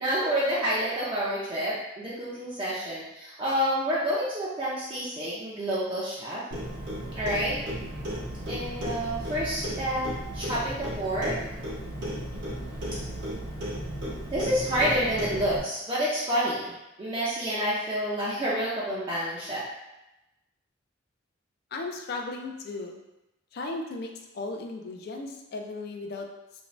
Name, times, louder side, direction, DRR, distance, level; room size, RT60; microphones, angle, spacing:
voice 1, 0.0-6.4 7.1-7.6 8.5-11.4 12.3-12.4 14.3-19.7, equal, 25° right, -8 dB, 0.4 m, -29 dB
Clock, 6.5-15.6, equal, 60° right, 0.8 m, -34 dB
voice 2, 21.7-23.0 23.5-24.1 24.3-26.3, left 3 dB, 50° left, 3 dB, 0.3 m, -35 dB
2.6 x 2.2 x 3.0 m, 0.95 s
head